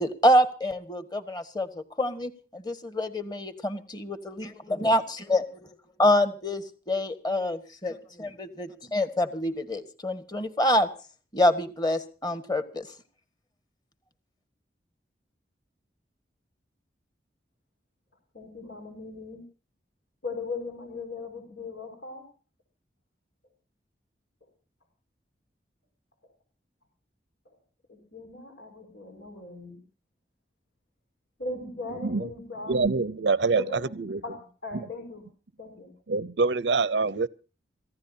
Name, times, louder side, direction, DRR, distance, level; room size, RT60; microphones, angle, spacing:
voice 1, 0.0-5.7 6.0-10.9 11.3-12.9, left 1 dB, 25° left, 1.7 m, -26 dB
voice 2, 18.3-19.4 20.2-22.2 27.5-27.6 27.9-29.8 31.4-32.8 33.5-33.9 34.2-35.3 35.6-35.9, left 3 dB, 80° left, 5.6 m, -38 dB
voice 3, 32.7-34.2 36.1-37.3, right 4 dB, 90° right, 0.7 m, -25 dB
28.0 x 15.5 x 2.8 m
head